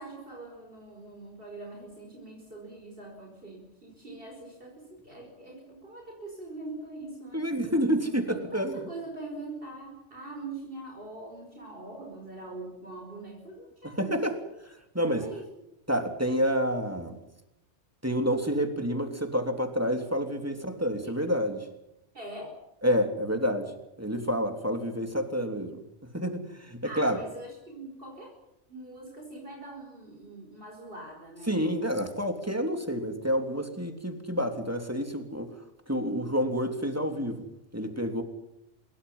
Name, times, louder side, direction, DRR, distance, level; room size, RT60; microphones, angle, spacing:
voice 1, 0.0-7.5 8.3-14.3 15.2-15.5 22.1-22.6 26.8-28.4 28.7-31.6, right 2 dB, 50° right, 1 dB, 5.2 m, -43 dB
voice 2, 7.3-8.8 14.0-14.3 14.9-15.3 15.9-17.2 18.0-21.7 22.8-23.7 24.0-25.8 26.1-27.2 31.5-35.5 35.9-37.4 37.7-38.2, equal, 10° right, 5 dB, 3.3 m, -28 dB
27.0 x 23.5 x 5.7 m, 0.85 s
omnidirectional pair, 1.2 m